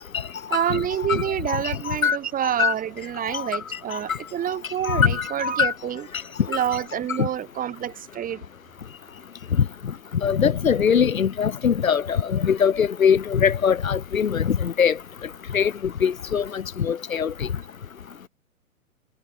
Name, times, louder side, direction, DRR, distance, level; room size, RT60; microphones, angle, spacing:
voice 1, 0.5-6.1 6.5-8.5, right 10 dB, 20° right, 5.5 m, -27 dB
voice 2, 1.9-2.2 2.4-2.7 3.3-3.5 3.9-4.2 4.9-5.7 7.2-7.3 9.6-9.7 10.2-15.0 15.5-15.7 16.0-17.5, left 7 dB, 75° left, 1.9 m, -22 dB
figure-of-eight pair, 120°, 41 cm